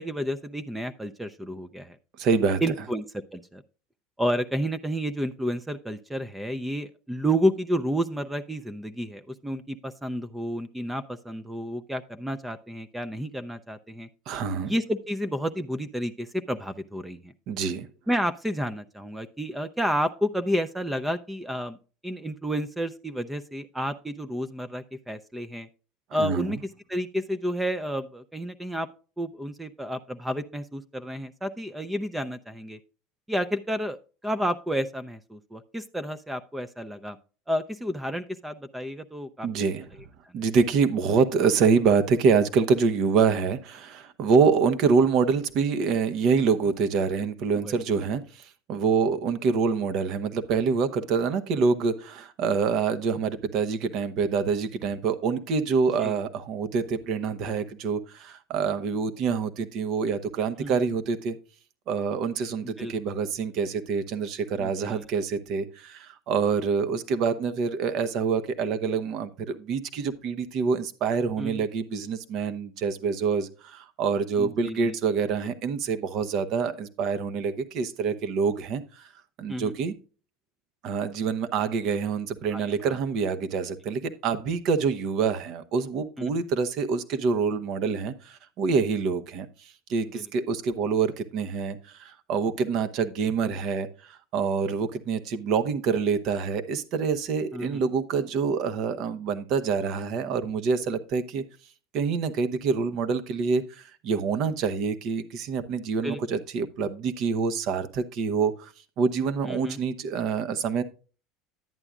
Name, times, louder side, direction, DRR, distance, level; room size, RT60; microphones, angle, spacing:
voice 1, 0.0-2.0 2.6-3.0 3.3-3.6 4.2-14.1 14.6-17.3 18.1-21.8 22.0-25.7 26.1-28.9 29.2-32.8 33.3-34.0 34.2-37.2 37.5-39.6 47.5-47.8 56.0-56.2 60.6-60.8 62.6-62.9 64.6-65.1 71.4-71.6 74.4-74.9 79.5-79.7 82.5-83.0 86.2-86.3 90.1-90.2 97.5-97.8 106.0-106.2 109.4-109.8, equal, 10° right, 12 dB, 0.5 m, -30 dB
voice 2, 2.2-2.6 14.3-14.7 17.5-17.9 26.2-26.6 39.4-39.8 40.3-61.4 61.9-79.1 79.4-79.9 80.8-89.5 89.9-101.4 101.9-108.7 109.0-110.8, right 5 dB, 55° right, 10 dB, 0.9 m, -26 dB
11.0 x 8.8 x 2.4 m, 0.36 s
hypercardioid pair, 85°, 0 cm